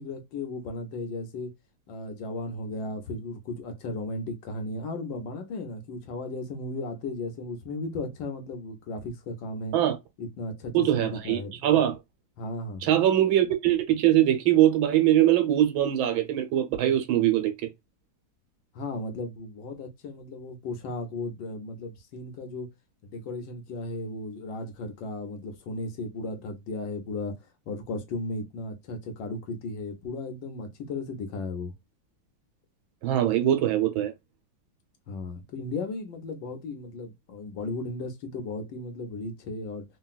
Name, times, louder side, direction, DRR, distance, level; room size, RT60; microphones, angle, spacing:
voice 1, 0.0-1.5 1.9-9.8 10.2-11.6 12.4-12.9 18.7-22.7 23.0-31.7 35.1-39.8, left 2 dB, 70° left, 1.5 m, -35 dB
voice 2, 10.7-11.9 12.8-17.5 33.0-34.1, right 12 dB, 85° right, 1.6 m, -22 dB
3.8 x 2.3 x 2.3 m
omnidirectional pair, 2.2 m